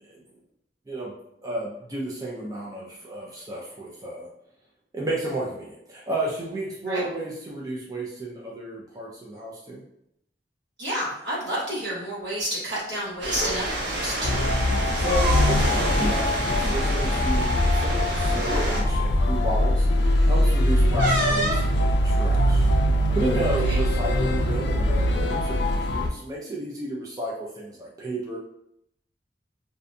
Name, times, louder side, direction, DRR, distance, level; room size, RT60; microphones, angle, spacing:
voice 1, 1.4-4.3 4.9-9.8 14.9-19.9 20.3-22.6 23.1-28.4, right 1 dB, 20° right, -5 dB, 0.4 m, -32 dB
voice 2, 10.8-14.4 23.7-23.8, equal, 70° right, -8 dB, 1.3 m, -30 dB
sound 1, 13.2-18.8, right 1 dB, 90° right, 0.7 m, -29 dB
sound 2, 13.3-13.5 14.8-15.7 16.0-16.1 16.5-16.7 17.7-17.8 18.4-18.7 21.0-21.7, right 1 dB, 50° right, 0.8 m, -26 dB
sound 3, 14.2-26.1, left 1 dB, 75° left, 0.3 m, -22 dB
2.6 x 2.2 x 2.5 m, 0.77 s
head